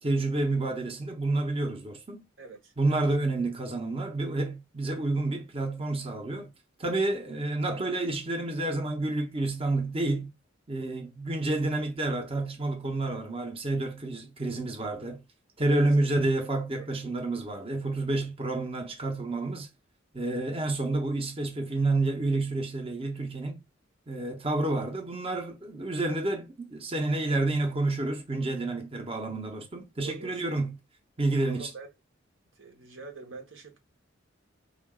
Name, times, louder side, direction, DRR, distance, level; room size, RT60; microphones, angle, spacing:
voice 1, 0.0-2.2 2.8-6.5 6.8-10.3 10.7-15.2 15.6-19.7 20.1-23.6 24.1-30.8 31.2-31.7, right 2 dB, 30° right, 0.8 m, -29 dB
voice 2, 2.4-3.0 15.7-16.1 16.8-16.9 30.0-30.4 31.5-31.9 32.6-33.8, right 4 dB, 70° right, 1.0 m, -45 dB
4.7 x 2.5 x 3.6 m
head